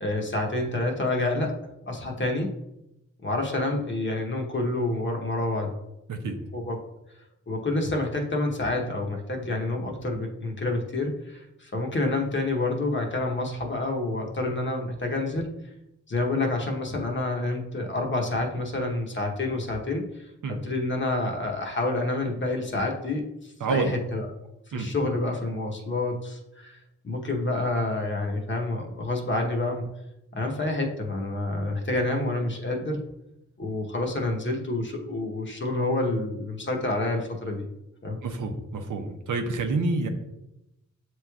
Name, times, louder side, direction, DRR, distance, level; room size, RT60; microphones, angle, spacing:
voice 1, 0.0-1.5 1.9-2.5 3.2-5.7 6.5-6.8 7.5-15.5 16.1-24.3 24.7-26.8 27.0-29.9 30.3-33.0 33.6-37.7 38.0-38.2, left 2 dB, 40° left, 1 dB, 0.9 m, -28 dB
voice 2, 23.6-24.0 24.7-24.9 38.2-40.1, right 3 dB, 80° right, 4 dB, 0.7 m, -28 dB
7.4 x 3.1 x 2.3 m, 0.89 s
cardioid pair, 65°, 31 cm